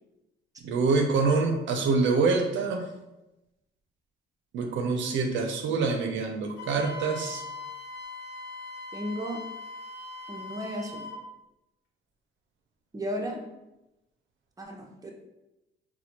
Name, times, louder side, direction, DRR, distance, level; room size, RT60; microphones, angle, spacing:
voice 1, 0.6-2.8 4.5-7.4, right 4 dB, 75° right, 3 dB, 0.5 m, -26 dB
Wind instrument woodwind instrument, 6.6-11.2, left 3 dB, 75° left, 1.0 m, -41 dB
voice 2, 8.9-9.4 10.3-11.1 12.9-13.4 14.6-15.1, equal, 15° right, 0 dB, 0.7 m, -34 dB
4.2 x 2.2 x 2.9 m, 0.96 s
cardioid pair, 90°, 20 cm